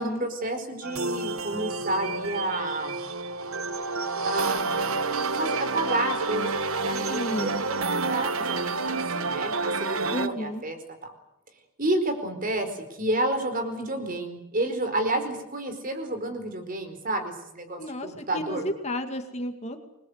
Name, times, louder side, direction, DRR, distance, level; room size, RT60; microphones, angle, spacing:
voice 1, 0.0-3.0 4.2-10.8 11.0-11.1 11.8-18.6, right 1 dB, 40° right, 7 dB, 4.6 m, -30 dB
sound 1, 0.8-10.3, right 3 dB, 80° right, 1.3 m, -29 dB
voice 2, 7.1-7.5 10.1-10.6 17.8-19.8, equal, 30° left, 5 dB, 2.3 m, -32 dB
28.0 x 21.5 x 8.1 m, 0.87 s
head